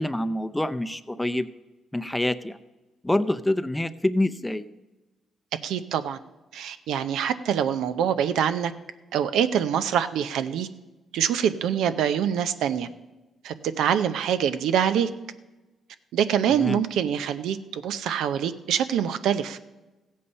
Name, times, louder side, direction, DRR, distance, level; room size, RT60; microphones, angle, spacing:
voice 1, 0.0-1.5 1.9-2.6 3.0-4.7 16.5-16.8, left 1 dB, 10° left, 11 dB, 0.6 m, -26 dB
voice 2, 5.6-6.2 6.5-8.7 9.1-10.7 11.1-12.9 13.4-15.1 16.1-19.6, right 9 dB, 85° right, 11 dB, 0.6 m, -25 dB
15.0 x 8.5 x 5.4 m, 1.1 s
cardioid pair, 80°, 0 cm